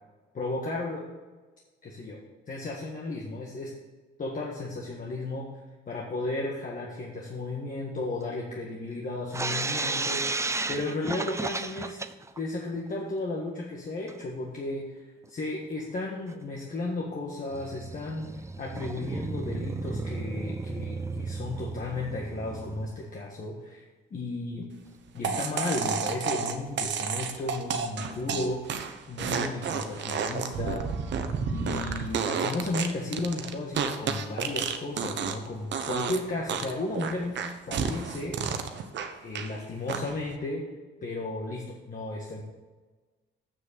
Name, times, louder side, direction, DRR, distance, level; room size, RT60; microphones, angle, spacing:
voice 1, 0.3-1.0 1.8-2.2 2.5-3.7 4.2-5.5 5.9-12.0 12.4-23.8 24.1-24.7 25.1-28.8 29.1-30.9 31.5-38.4 39.2-40.6 41.0-42.4, left 2 dB, 45° left, -2 dB, 1.6 m, -34 dB
sound 1, 9.3-12.4 12.7-12.8 13.1-13.2 14.1-14.2 15.2-15.3 15.8-15.9 16.3-16.4 17.5-23.1, right 3 dB, 15° right, 0.5 m, -34 dB
sound 2, 25.2-35.5 35.7-36.2 36.5-39.5 39.9-40.3, right 6 dB, 65° right, 1.0 m, -31 dB
7.5 x 6.5 x 6.7 m, 1.3 s
cardioid pair, 90°, 20 cm